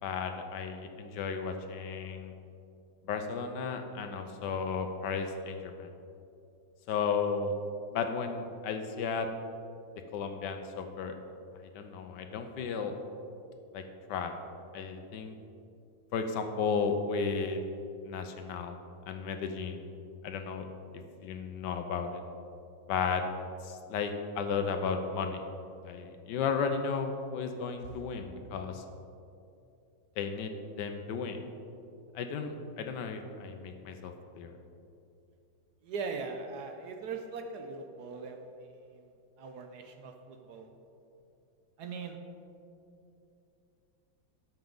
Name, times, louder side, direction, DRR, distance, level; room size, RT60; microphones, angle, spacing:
voice 1, 0.0-2.3 3.1-5.9 6.9-7.6 7.9-9.3 10.1-11.2 11.7-12.9 13.7-13.8 14.1-14.3 14.7-15.4 16.1-17.6 18.0-18.8 19.1-19.8 20.2-20.7 21.2-22.2 22.9-23.2 23.6-25.4 25.8-28.8 30.2-30.5 30.8-31.4 32.1-34.6, left 5 dB, 75° left, 6 dB, 1.2 m, -34 dB
voice 2, 35.8-38.4 39.4-40.7 41.8-42.2, right 4 dB, 70° right, 5 dB, 1.1 m, -40 dB
13.0 x 5.9 x 3.8 m, 2.6 s
omnidirectional pair, 2.0 m